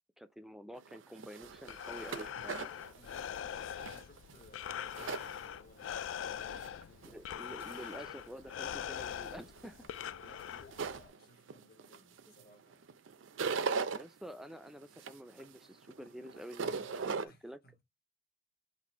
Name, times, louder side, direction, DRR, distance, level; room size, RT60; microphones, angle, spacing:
voice 1, 0.2-2.7 7.0-9.9 13.8-17.6, equal, ahead, 0.4 m, -49 dB
sound 1, 0.8-5.8 6.3-7.1 7.6-8.1 8.6-12.4 12.7-14.0 14.5-17.3, right 5 dB, 85° right, 0.5 m, -39 dB
Breathing, 1.4-11.1, left 9 dB, 85° left, 0.3 m, -43 dB
voice 2, 2.9-7.7 10.2-12.9 16.6-17.8, left 1 dB, 55° left, 1.4 m, -61 dB
4.1 x 2.6 x 4.4 m
head